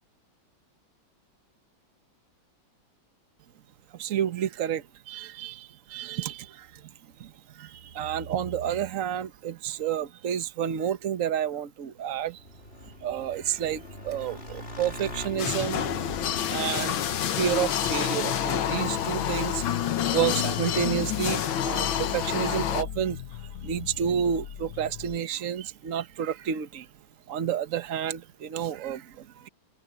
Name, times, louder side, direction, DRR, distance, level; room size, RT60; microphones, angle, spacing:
voice 1, 3.9-6.8 7.2-12.4 13.0-15.9 16.5-17.0 17.2-23.2 23.6-26.9 27.3-29.5, right 9 dB, 50° right, 1.3 m, -30 dB
Motorcycle / Engine, 12.2-19.6, left 2 dB, 30° left, 3.5 m, -42 dB
sound 1, 15.4-22.8, left 10 dB, 85° left, 1.9 m, -28 dB
sound 2, 16.1-25.2, left 10 dB, 60° left, 1.2 m, -37 dB
open air
omnidirectional pair, 2.1 m